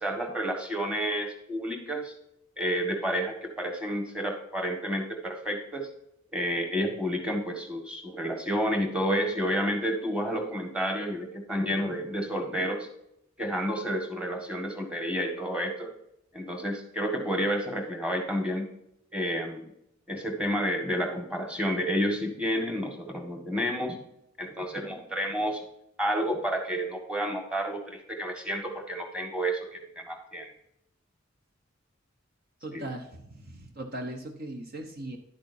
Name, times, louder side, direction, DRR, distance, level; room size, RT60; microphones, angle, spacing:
voice 1, 0.0-2.1 2.6-5.9 6.3-12.9 13.4-15.9 16.3-18.7 19.1-19.7 20.1-24.0 24.4-25.6 26.0-30.5 32.7-32.9, equal, 5° right, 3 dB, 1.7 m, -30 dB
voice 2, 32.6-35.2, right 1 dB, 50° right, 4 dB, 1.0 m, -39 dB
11.0 x 8.8 x 2.7 m, 0.80 s
head